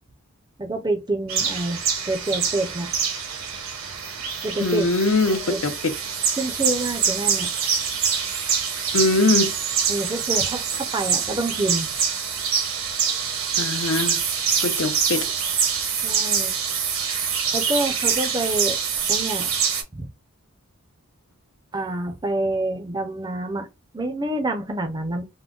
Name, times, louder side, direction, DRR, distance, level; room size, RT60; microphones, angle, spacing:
voice 1, 0.6-1.8 2.1-2.9 4.4-4.9 5.3-5.6 6.4-7.5 9.9-11.9 16.0-16.5 17.5-18.8 19.1-19.5 19.9-20.1 21.7-23.7 23.9-25.2, right 2 dB, 20° right, 0.4 m, -27 dB
sound 1, 1.3-19.8, right 6 dB, 65° right, 0.8 m, -25 dB
voice 2, 4.6-5.9 8.9-9.5 13.6-14.2 14.6-15.3, left 3 dB, 65° left, 0.6 m, -22 dB
3.7 x 2.0 x 2.3 m
head